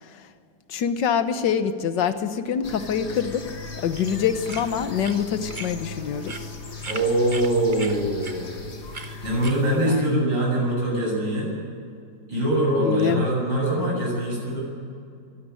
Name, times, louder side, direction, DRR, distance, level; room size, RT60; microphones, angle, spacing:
voice 1, 0.7-6.6 9.9-10.2 12.8-13.3, left 7 dB, 75° left, 10 dB, 1.7 m, -25 dB
sound 1, 2.6-9.5, left 4 dB, 40° left, 1.5 m, -38 dB
sound 2, 3.3-9.9, right 4 dB, 35° right, 1.0 m, -41 dB
voice 2, 6.9-8.5 9.2-11.5 12.3-14.6, right 1 dB, 80° right, -3 dB, 8.5 m, -23 dB
25.5 x 12.5 x 9.3 m, 2.4 s
omnidirectional pair, 2.0 m